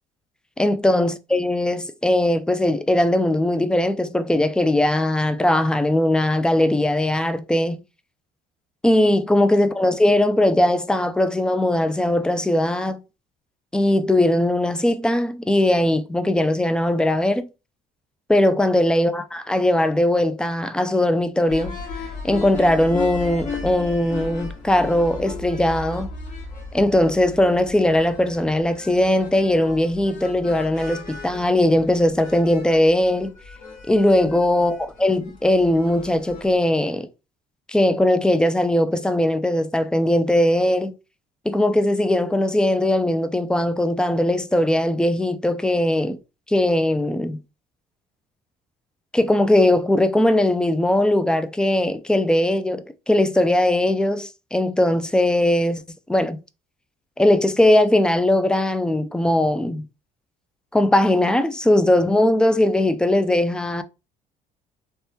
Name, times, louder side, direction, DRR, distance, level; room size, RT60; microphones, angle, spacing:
voice 1, 0.6-7.8 8.8-13.0 13.7-17.5 18.3-21.8 22.2-26.1 26.7-33.3 33.9-37.1 37.7-40.9 41.5-46.2 46.5-47.4 49.1-55.8 56.1-56.4 57.2-59.8 60.7-63.8, left 1 dB, 5° left, 0.3 m, -19 dB
sound 1, 21.5-36.6, left 3 dB, 50° left, 1.2 m, -36 dB
3.4 x 2.2 x 2.7 m
cardioid pair, 110°, 17 cm